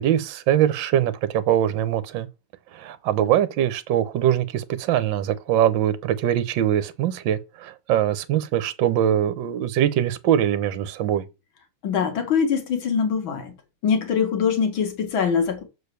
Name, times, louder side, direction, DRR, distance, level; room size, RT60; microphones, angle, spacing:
voice 1, 0.0-2.3 2.7-11.2, right 11 dB, 70° right, 1.5 m, -22 dB
voice 2, 11.8-13.6 13.8-15.6, left 6 dB, 65° left, 2.4 m, -23 dB
6.6 x 4.6 x 6.8 m
omnidirectional pair, 2.3 m